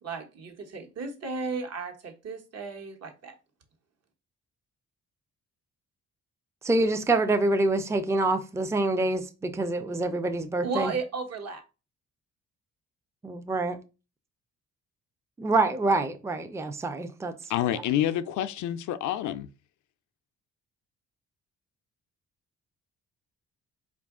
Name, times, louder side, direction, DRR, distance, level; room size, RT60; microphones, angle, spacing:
voice 1, 0.0-3.3 10.6-11.6, right 4 dB, 55° right, 1.1 m, -34 dB
voice 2, 6.6-10.9 13.2-13.8 15.4-17.3 17.7-17.8, right 2 dB, 10° right, 0.4 m, -26 dB
voice 3, 17.5-19.5, left 12 dB, 75° left, 0.5 m, -28 dB
4.6 x 2.5 x 3.5 m
cardioid pair, 90°, 30 cm